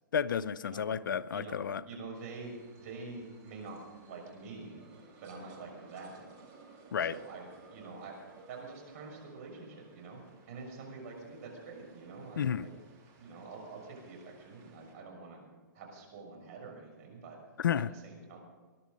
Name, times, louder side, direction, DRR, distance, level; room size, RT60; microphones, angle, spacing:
voice 1, 0.1-1.8 6.9-7.2 12.4-12.7 17.6-17.9, left 8 dB, 75° left, 0.6 m, -31 dB
voice 2, 1.9-4.9 5.2-6.2 7.0-12.8 13.2-15.4 15.7-17.4 18.0-18.4, right 3 dB, 50° right, 6.3 m, -46 dB
sound 1, 2.1-14.9, right 4 dB, 30° right, 3.6 m, -58 dB
20.5 x 11.5 x 5.3 m
hypercardioid pair, 135°, 11 cm